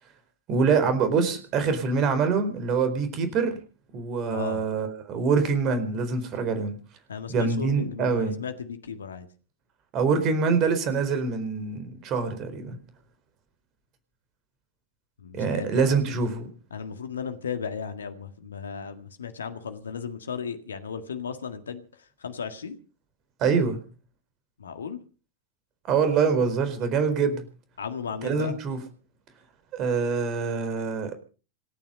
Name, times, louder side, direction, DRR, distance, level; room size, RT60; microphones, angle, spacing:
voice 1, 0.5-3.6 3.9-6.8 7.3-8.4 9.9-12.8 15.3-16.5 23.4-23.8 25.9-27.4 28.2-28.8 29.7-31.1, right 5 dB, 35° right, 10 dB, 4.3 m, -25 dB
voice 2, 4.3-4.6 7.1-9.3 15.2-16.0 16.7-21.8 22.2-22.8 24.6-25.0 27.8-28.6, left 6 dB, 70° left, 8 dB, 1.8 m, -35 dB
27.0 x 9.4 x 5.3 m, 0.39 s
figure-of-eight pair, 90°, 0 cm